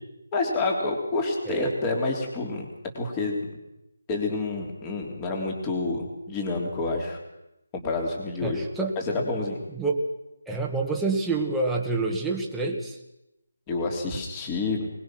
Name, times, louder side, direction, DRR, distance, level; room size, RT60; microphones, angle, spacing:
voice 1, 0.3-2.7 2.9-3.4 4.1-7.2 7.7-8.6 9.1-9.6 13.7-14.9, left 3 dB, 15° left, 2 dB, 3.4 m, -28 dB
voice 2, 8.4-9.0 9.7-10.0 10.5-13.0, right 3 dB, 5° right, -2 dB, 1.9 m, -27 dB
23.0 x 20.5 x 6.2 m, 0.90 s
figure-of-eight pair, 165°, 0 cm